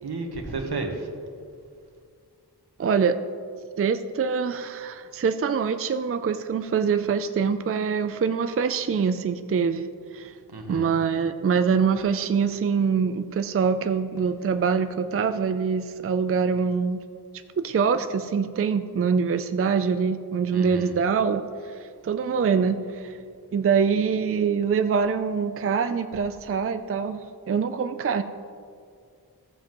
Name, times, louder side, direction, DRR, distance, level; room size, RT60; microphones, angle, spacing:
voice 1, 0.0-1.1 10.5-10.9 20.5-20.9, right 3 dB, 75° right, 4 dB, 1.2 m, -32 dB
voice 2, 2.8-3.1 3.8-10.3 10.7-17.0 17.6-23.2 23.5-27.2 27.5-28.2, right 6 dB, 35° right, 9 dB, 0.4 m, -24 dB
14.5 x 7.3 x 3.0 m, 2.3 s
wide cardioid pair, 80°, 39 cm